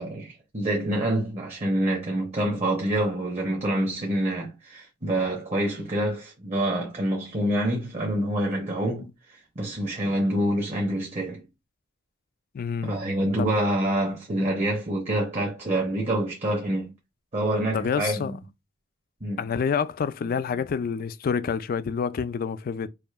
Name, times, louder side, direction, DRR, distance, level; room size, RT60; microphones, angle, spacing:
voice 1, 0.0-9.1 9.6-11.4 12.8-16.9 17.3-18.4 19.2-19.4, right 1 dB, 35° right, 0.9 m, -26 dB
voice 2, 12.5-13.0 13.4-13.5 17.7-18.4 19.4-22.9, left 6 dB, 45° left, 0.3 m, -28 dB
4.9 x 2.6 x 2.3 m
head